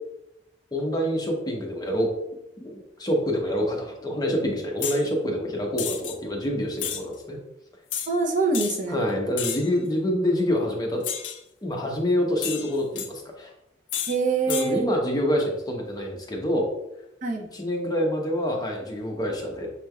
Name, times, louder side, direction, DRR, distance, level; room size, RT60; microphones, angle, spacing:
voice 1, 0.7-2.1 2.6-7.4 8.9-11.0 11.6-13.5 14.5-16.7 17.4-19.7, equal, 20° left, 0 dB, 0.7 m, -26 dB
sound 1, 4.8-5.0 5.8-6.2 6.8-7.0 7.9-8.1 8.5-8.8 9.4-9.7 11.0-11.4 12.4-13.1 13.9-14.2 14.5-14.7, left 9 dB, 70° left, 0.5 m, -31 dB
voice 2, 8.1-9.0 14.1-14.9 17.2-17.5, right 4 dB, 45° right, 2 dB, 0.6 m, -24 dB
6.3 x 3.2 x 2.2 m, 0.87 s
head